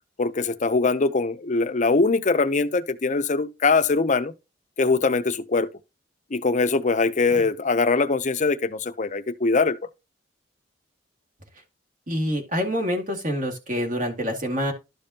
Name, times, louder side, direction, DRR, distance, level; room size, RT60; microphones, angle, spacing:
voice 1, 0.2-4.3 4.8-5.7 6.3-9.8, left 3 dB, 45° left, 0.7 m, -22 dB
voice 2, 12.1-14.7, equal, 45° right, 2.2 m, -26 dB
12.5 x 5.1 x 2.8 m
head